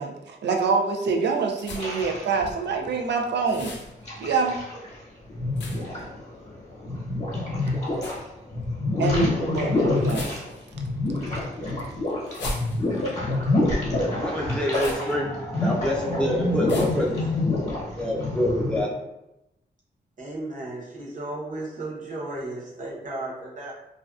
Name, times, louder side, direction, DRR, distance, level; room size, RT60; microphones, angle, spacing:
voice 1, 0.0-3.7 4.2-4.6 9.0-10.3, right 4 dB, 70° right, 3 dB, 0.4 m, -25 dB
sound 1, 1.6-2.1 3.5-3.9 5.6-6.0 7.9-8.2 10.0-10.7 12.3-13.1 14.7-15.1 16.7-17.1, left 1 dB, 75° left, 0.5 m, -37 dB
sound 2, 1.8-2.9 3.6-4.9 5.3-8.2 8.5-15.1 15.4-18.8, left 2 dB, 40° left, 0.8 m, -27 dB
voice 2, 14.1-17.4 18.0-18.9, equal, 5° left, -4 dB, 0.5 m, -27 dB
voice 3, 20.2-23.7, right 2 dB, 45° right, -4 dB, 0.8 m, -34 dB
2.4 x 2.2 x 2.3 m, 0.88 s
wide cardioid pair, 125°, 18 cm